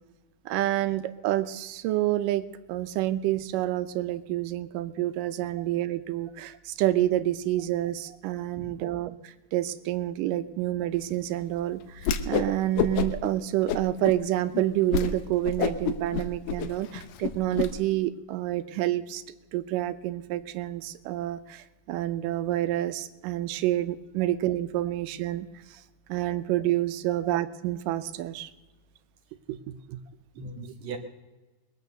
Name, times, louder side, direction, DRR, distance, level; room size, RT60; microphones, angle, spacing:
voice 1, 0.5-9.2 9.5-19.2 19.5-25.8 26.1-28.5 29.5-30.0 30.6-30.7, right 14 dB, 80° right, 13 dB, 2.3 m, -28 dB
voice 2, 8.6-8.9 24.2-24.3 27.2-27.3 30.4-31.0, right 4 dB, 60° right, 5 dB, 2.3 m, -39 dB
Whoosh swoosh swish, 12.0-12.5 12.8-13.3 13.7-14.2 14.5-14.6 14.9-15.1 15.4-17.7, left 7 dB, 80° left, 2.5 m, -28 dB
21.5 x 9.1 x 6.7 m, 1.2 s
omnidirectional pair, 3.8 m